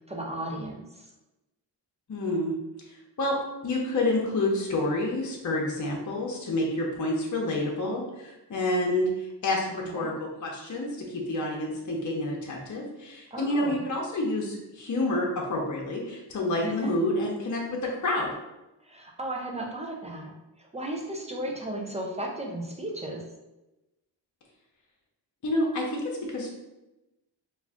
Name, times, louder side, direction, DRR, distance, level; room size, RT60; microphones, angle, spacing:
voice 1, 0.1-1.1 9.8-10.1 13.3-13.8 16.6-16.9 18.8-23.2, right 1 dB, 15° right, 0 dB, 0.5 m, -35 dB
voice 2, 2.1-2.5 3.2-3.4 3.6-18.3 25.4-26.5, left 1 dB, 40° left, -2 dB, 0.7 m, -28 dB
2.4 x 2.4 x 3.5 m, 0.99 s
cardioid pair, 75°, 45 cm